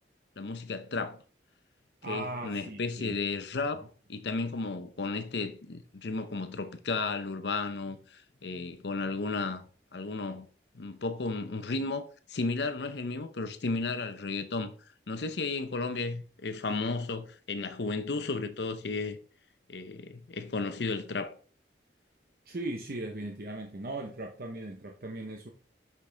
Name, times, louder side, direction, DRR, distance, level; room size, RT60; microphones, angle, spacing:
voice 1, 0.4-1.2 2.1-3.8 4.1-9.6 9.9-10.5 10.7-14.7 15.1-19.2 19.7-21.3, left 3 dB, 75° left, 0.7 m, -33 dB
voice 2, 2.0-3.2 22.5-25.5, right 2 dB, 55° right, 0.7 m, -38 dB
6.1 x 5.9 x 3.3 m
head